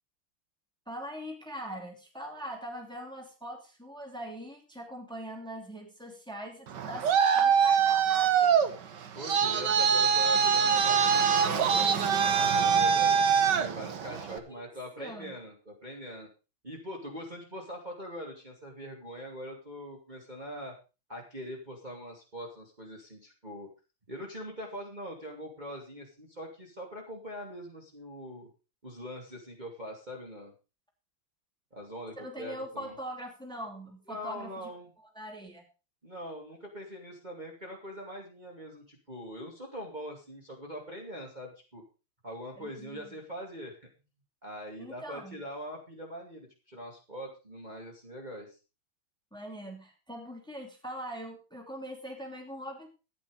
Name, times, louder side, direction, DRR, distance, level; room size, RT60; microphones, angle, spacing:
voice 1, 0.9-8.6 14.1-14.6 15.0-15.3 32.2-34.5 35.1-35.6 42.6-43.1 44.8-45.4 49.3-52.9, equal, ahead, 2 dB, 2.9 m, -42 dB
Traffic noise roadway noise, 6.7-14.4, right 7 dB, 60° right, 1.6 m, -24 dB
voice 2, 9.1-13.1 13.5-16.3 16.6-20.7 21.1-23.7 24.1-28.5 28.8-30.5 31.7-32.9 34.1-34.9 36.0-41.8 42.2-43.9 44.4-48.6, equal, 20° right, -1 dB, 2.7 m, -42 dB
13.5 x 9.6 x 5.0 m, 0.32 s
omnidirectional pair, 2.4 m